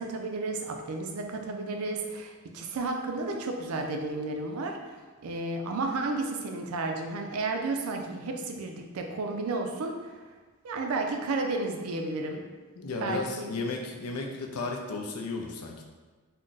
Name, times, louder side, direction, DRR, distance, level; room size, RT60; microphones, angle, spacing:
voice 1, 0.0-10.2 10.6-12.4 13.0-13.5, right 3 dB, 80° right, 3 dB, 0.4 m, -32 dB
voice 2, 12.8-15.8, left 3 dB, 90° left, 2 dB, 0.5 m, -34 dB
2.5 x 2.1 x 3.8 m, 1.4 s
head